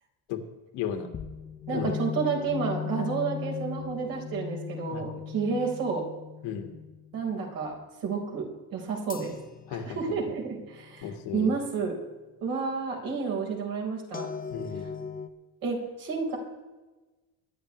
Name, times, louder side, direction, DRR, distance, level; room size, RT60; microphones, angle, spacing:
voice 1, 0.7-1.1 1.7-2.0 4.9-5.1 6.4-6.7 9.7-10.2 11.0-11.6 14.5-14.9, left 8 dB, 80° left, 5 dB, 2.1 m, -34 dB
sound 1, 1.1-7.4 9.1-11.9 14.1-15.3, left 8 dB, 20° left, 0.9 m, -38 dB
voice 2, 1.7-6.0 7.1-8.4 8.7-9.3 9.7-12.0 12.4-14.3 15.6-16.4, right 5 dB, 55° right, 0 dB, 4.5 m, -30 dB
23.5 x 11.0 x 3.2 m, 1.2 s
cardioid pair, 150°, 41 cm